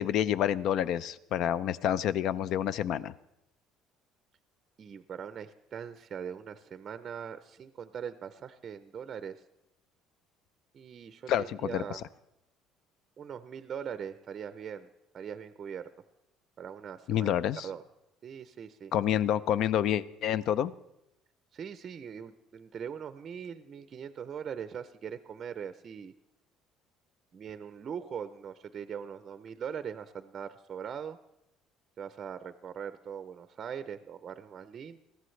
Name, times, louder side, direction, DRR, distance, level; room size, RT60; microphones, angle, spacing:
voice 1, 0.0-3.1 11.3-12.0 17.1-17.7 18.9-20.7, left 10 dB, 55° left, 17 dB, 0.4 m, -28 dB
voice 2, 4.8-9.4 10.7-12.0 13.2-15.9 16.6-17.3 17.6-17.8 18.2-18.9 21.5-26.1 27.3-31.2 32.0-35.0, right 7 dB, 35° right, 11 dB, 0.5 m, -41 dB
21.0 x 14.5 x 3.2 m, 0.89 s
cardioid pair, 140°, 0 cm